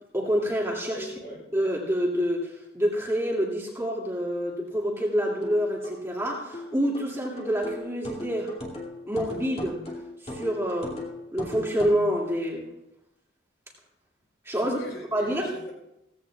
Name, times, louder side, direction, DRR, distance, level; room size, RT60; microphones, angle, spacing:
voice 1, 0.1-1.1 1.5-8.5 9.1-9.8 10.2-11.0 11.3-12.7 14.4-14.8 15.1-15.5, equal, 15° right, -4 dB, 2.4 m, -27 dB
voice 2, 0.9-1.4 14.6-15.7, equal, 55° left, -1 dB, 3.8 m, -40 dB
sound 1, 5.4-12.1, left 1 dB, 30° left, 2.5 m, -38 dB
17.5 x 15.5 x 2.4 m, 0.91 s
head